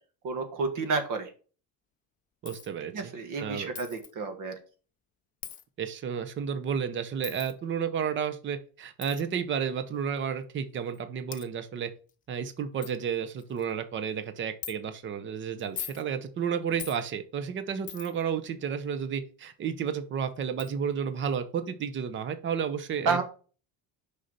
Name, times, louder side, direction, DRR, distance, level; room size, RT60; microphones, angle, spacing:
voice 1, 0.2-1.3 2.9-4.5 23.1-23.2, right 4 dB, 50° right, 7 dB, 1.6 m, -30 dB
voice 2, 2.4-3.1 3.4-3.7 5.8-11.9 12.3-23.2, right 7 dB, 30° right, 10 dB, 0.7 m, -32 dB
Coin (dropping), 2.5-2.7 3.8-4.1 5.4-5.6 7.2-7.5 9.0-9.2 10.2-10.3 10.9-11.0 11.3-11.5 12.1-12.2 12.5-12.6 12.8-13.0 13.4-13.7 14.6-14.8 15.6-16.0 16.8-17.0 17.9-18.2 19.9-20.0 20.6-20.7, left 9 dB, 20° left, 0.4 m, -40 dB
6.4 x 5.6 x 4.1 m, 0.37 s
cardioid pair, 175°, 39 cm